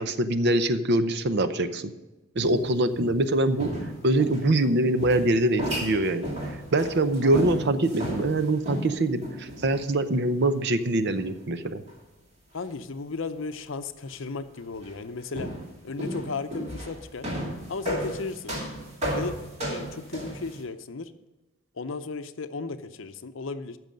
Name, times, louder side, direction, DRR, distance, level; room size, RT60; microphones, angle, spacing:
voice 1, 0.0-1.9 2.3-3.7 4.0-11.8, right 1 dB, 50° right, 11 dB, 0.7 m, -24 dB
sound 1, 2.4-3.3 3.6-4.6 5.0-9.9 10.6-10.7 11.9-12.0 13.4-13.5 14.7-14.9 15.4-20.6, equal, 30° right, 2.4 m, -34 dB
voice 2, 12.5-15.5 15.8-17.3 17.7-18.5 19.1-21.1 21.7-23.8, left 4 dB, 60° left, 10 dB, 0.6 m, -35 dB
14.5 x 6.2 x 5.2 m, 1.1 s
head